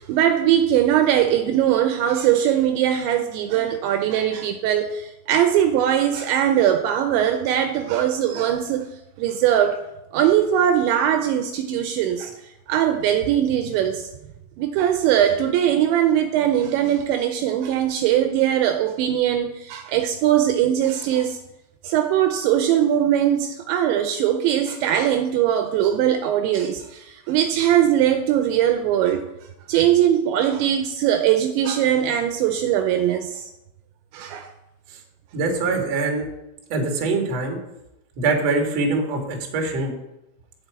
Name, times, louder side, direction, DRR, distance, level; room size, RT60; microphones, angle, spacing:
voice 1, 0.1-8.9 9.2-9.8 10.1-12.3 12.7-14.1 14.6-21.4 21.8-29.2 29.7-33.5 34.1-34.5, right 10 dB, 80° right, 7 dB, 2.8 m, -20 dB
voice 2, 35.3-36.2 36.7-37.6 38.2-39.9, right 3 dB, 50° right, 3 dB, 2.2 m, -23 dB
8.8 x 7.5 x 8.2 m, 0.93 s
omnidirectional pair, 5.5 m